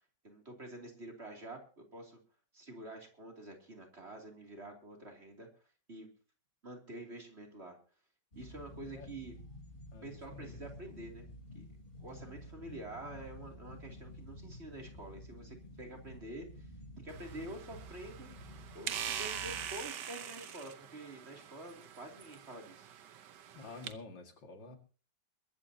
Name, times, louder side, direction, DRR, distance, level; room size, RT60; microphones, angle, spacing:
voice 1, 0.2-2.2 2.5-5.5 5.9-6.1 6.6-7.7 8.3-9.3 10.0-11.2 11.5-11.6 12.0-16.6 17.0-18.3 18.7-22.9, right 1 dB, 35° right, 1 dB, 3.2 m, -48 dB
sound 1, 8.3-19.8, left 1 dB, 30° left, 3.8 m, -51 dB
voice 2, 9.9-10.6 23.5-24.8, left 3 dB, 85° left, 4 dB, 2.7 m, -49 dB
sound 2, 17.1-23.9, right 9 dB, 70° right, 1.6 m, -44 dB
22.5 x 12.5 x 2.8 m, 0.37 s
omnidirectional pair, 1.9 m